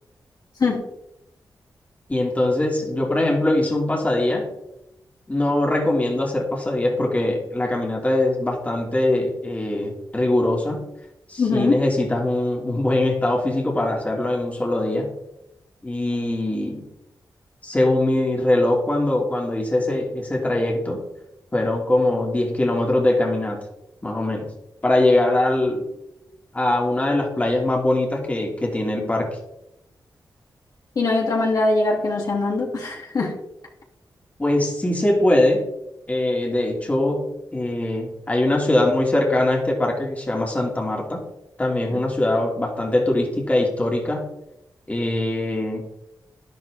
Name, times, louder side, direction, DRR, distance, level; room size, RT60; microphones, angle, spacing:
voice 1, 2.1-4.5 5.3-10.8 11.3-15.1 15.8-16.8 17.6-21.0 21.5-23.6 24.0-24.5 24.8-25.9 26.5-29.4 34.4-35.6 36.1-41.2 41.6-44.2 44.9-45.8, left 1 dB, 20° left, -1 dB, 2.6 m, -22 dB
voice 2, 11.4-11.8 30.9-33.3 41.9-42.0, left 3 dB, 55° left, -2 dB, 3.1 m, -22 dB
12.0 x 11.5 x 3.7 m, 0.85 s
wide cardioid pair, 130°, 7 cm